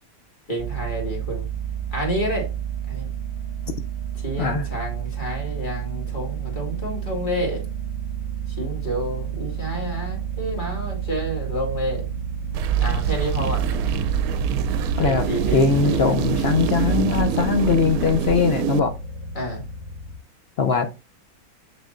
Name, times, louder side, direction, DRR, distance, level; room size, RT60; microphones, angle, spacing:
voice 1, 0.5-1.5 1.9-2.5 2.9-3.1 4.1-7.6 8.5-12.1 12.8-14.0 15.0-16.1 19.3-19.6, equal, 30° left, 2.3 m, -29 dB
sound 1, 0.6-20.2, right 7 dB, 50° right, 1.1 m, -31 dB
sound 2, 12.5-18.8, right 8 dB, 75° right, 1.0 m, -24 dB
voice 2, 15.5-18.9 20.6-20.9, left 5 dB, 60° left, 0.6 m, -21 dB
6.7 x 6.2 x 2.5 m
omnidirectional pair, 1.6 m